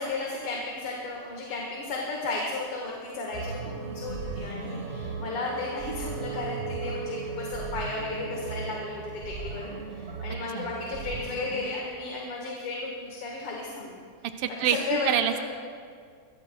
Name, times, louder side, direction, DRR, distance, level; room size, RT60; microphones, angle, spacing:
voice 1, 0.0-9.0 9.4-13.9 14.6-15.4, left 3 dB, 85° left, -2 dB, 2.6 m, -34 dB
sound 1, 3.3-11.7, right 4 dB, 40° right, 1.1 m, -36 dB
voice 2, 14.4-15.4, right 10 dB, 90° right, 7 dB, 1.6 m, -26 dB
21.5 x 16.5 x 2.3 m, 2.1 s
omnidirectional pair, 2.4 m